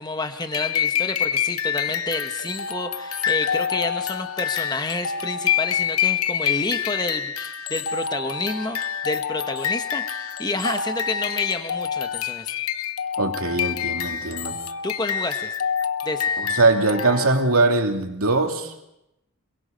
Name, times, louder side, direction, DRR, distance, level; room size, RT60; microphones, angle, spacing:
voice 1, 0.0-12.5 14.8-15.6 16.0-16.3, left 2 dB, 20° left, 7 dB, 1.2 m, -29 dB
sound 1, 0.5-17.6, left 8 dB, 80° left, 0.9 m, -27 dB
voice 2, 13.2-14.6 16.4-18.9, right 3 dB, 80° right, 3 dB, 2.7 m, -21 dB
27.5 x 22.5 x 5.2 m, 0.86 s
head